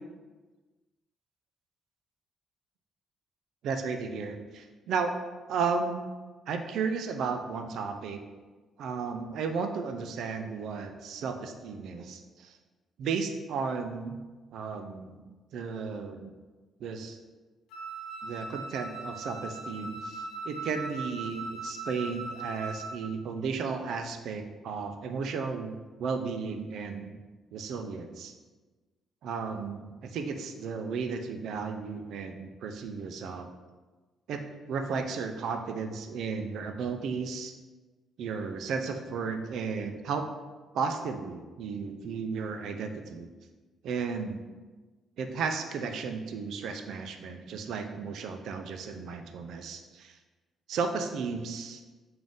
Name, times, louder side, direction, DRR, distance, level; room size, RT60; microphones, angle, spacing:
voice 1, 3.6-5.1 5.5-6.0 6.5-8.2 8.8-12.6 13.0-14.2 14.5-15.2 15.5-16.3 16.8-17.2 18.2-27.2 27.5-28.3 29.2-33.5 34.3-34.4 34.7-37.5 38.2-40.3 40.7-43.3 43.8-44.4 45.2-50.2 50.7-51.8, right 5 dB, 75° right, 6 dB, 0.3 m, -34 dB
Wind instrument woodwind instrument, 17.7-23.1, right 3 dB, 90° left, 0.5 m, -39 dB
3.7 x 2.5 x 3.5 m, 1.3 s
cardioid pair, 90°, 0 cm